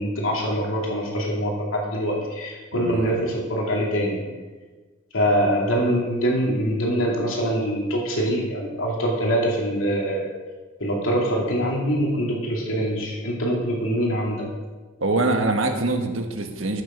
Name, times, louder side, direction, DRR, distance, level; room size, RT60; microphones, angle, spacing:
voice 1, 0.0-4.2 5.1-10.3 10.8-14.5, equal, 90° left, -2 dB, 2.6 m, -24 dB
voice 2, 2.7-3.1 15.0-16.8, right 2 dB, 80° right, 5 dB, 1.3 m, -24 dB
13.5 x 6.8 x 5.1 m, 1.3 s
head